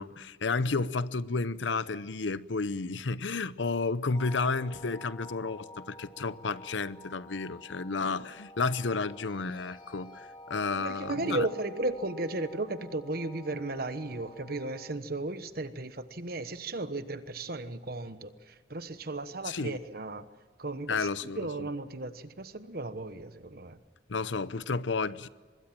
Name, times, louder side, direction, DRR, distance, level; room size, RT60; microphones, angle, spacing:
voice 1, 0.0-11.5 19.4-19.8 20.9-21.5 24.1-25.3, left 4 dB, 90° left, 0.8 m, -32 dB
sound 1, 4.1-15.0, left 1 dB, 25° left, 1.4 m, -50 dB
voice 2, 10.7-20.3 20.6-21.1 21.3-23.8, right 2 dB, 55° right, 1.2 m, -35 dB
24.5 x 21.0 x 7.5 m
head